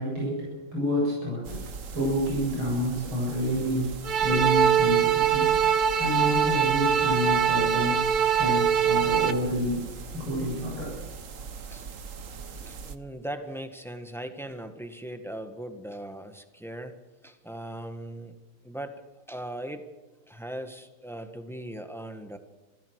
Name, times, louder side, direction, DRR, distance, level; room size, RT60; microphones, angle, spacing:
voice 1, 0.0-8.1 8.4-11.0, equal, 70° right, -4 dB, 8.9 m, -29 dB
sound 1, 1.4-13.0, right 5 dB, 45° right, 1.2 m, -41 dB
sound 2, 4.0-9.3, right 8 dB, 90° right, 2.1 m, -23 dB
voice 2, 12.6-16.9 17.2-18.4 18.6-19.0 19.3-19.8 20.3-22.4, right 1 dB, ahead, 7 dB, 1.5 m, -39 dB
27.0 x 16.5 x 6.5 m, 1.2 s
omnidirectional pair, 2.4 m